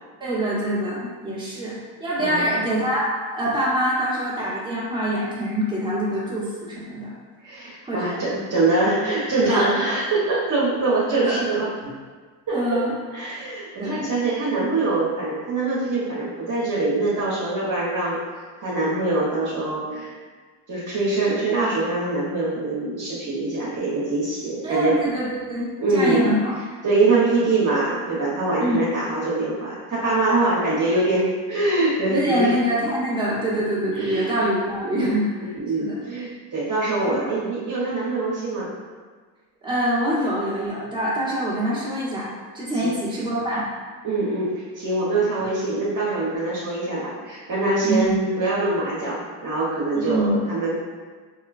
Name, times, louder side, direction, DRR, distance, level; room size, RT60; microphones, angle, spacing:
voice 1, 0.2-7.2 7.8-8.2 9.5-9.7 11.2-11.4 11.8-11.9 12.5-12.9 13.8-14.0 24.6-26.5 28.6-28.8 32.1-35.2 35.8-36.0 37.1-37.3 39.6-42.3 42.5-43.6 47.8-48.1 50.1-50.4, right 1 dB, 10° right, -8 dB, 1.3 m, -25 dB
voice 2, 2.2-2.5 7.4-11.7 12.5-12.8 13.1-18.2 18.6-20.2 20.7-25.0 25.8-26.3 26.8-32.5 34.0-34.3 34.9-35.1 35.4-38.7 42.8-43.0 44.0-50.7, right 2 dB, 40° right, -7 dB, 1.2 m, -23 dB
3.5 x 3.1 x 2.6 m, 1.5 s
supercardioid pair, 65°, 46 cm